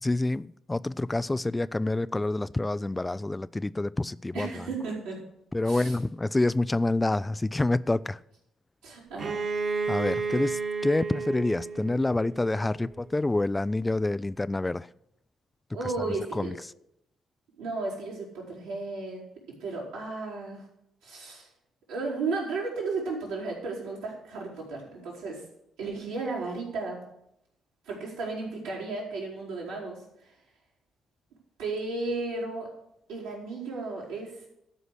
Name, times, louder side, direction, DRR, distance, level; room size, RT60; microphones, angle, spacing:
voice 1, 0.0-4.7 5.5-8.2 9.9-14.9 16.3-16.5, left 2 dB, 20° left, 0.3 m, -27 dB
voice 2, 4.3-5.2 5.6-6.0 8.8-9.4 15.7-16.5 17.6-19.2 19.5-20.6 21.0-21.5 21.9-25.5 25.8-27.1 27.8-30.4 31.6-32.7 33.1-34.5, right 3 dB, 80° right, 4.4 m, -34 dB
Bowed string instrument, 9.2-12.8, right 4 dB, 50° right, 1.8 m, -32 dB
13.0 x 5.0 x 8.2 m
hypercardioid pair, 45°, 0 cm